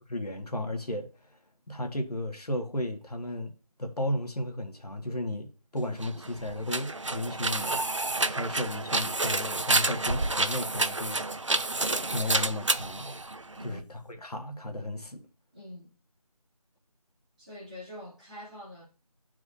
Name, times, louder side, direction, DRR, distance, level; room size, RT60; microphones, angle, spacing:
voice 1, 0.1-1.1 1.3-1.4 1.7-3.5 3.8-5.5 5.7-7.8 8.3-11.2 12.1-13.2 13.6-15.2, left 1 dB, 80° left, 1.9 m, -34 dB
sound 1, 5.9-13.8, right 2 dB, 50° right, 0.5 m, -29 dB
voice 2, 13.5-13.9 15.5-15.9 17.4-18.8, left 1 dB, 10° right, 2.6 m, -45 dB
13.0 x 4.8 x 2.7 m
figure-of-eight pair, 180°, 20 cm